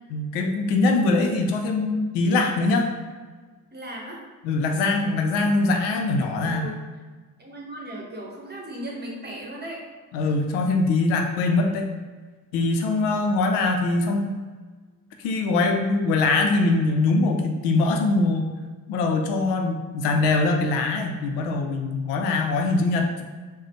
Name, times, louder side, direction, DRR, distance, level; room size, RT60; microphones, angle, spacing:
voice 1, 0.1-2.9 4.4-6.7 10.1-11.9 12.5-14.3 15.2-18.5 18.9-23.2, left 3 dB, 70° left, 3 dB, 0.6 m, -22 dB
voice 2, 3.7-4.2 6.4-6.8 7.4-9.9 13.0-13.4, equal, 25° right, -2 dB, 1.0 m, -37 dB
3.9 x 2.1 x 3.0 m, 1.4 s
hypercardioid pair, 45°, 43 cm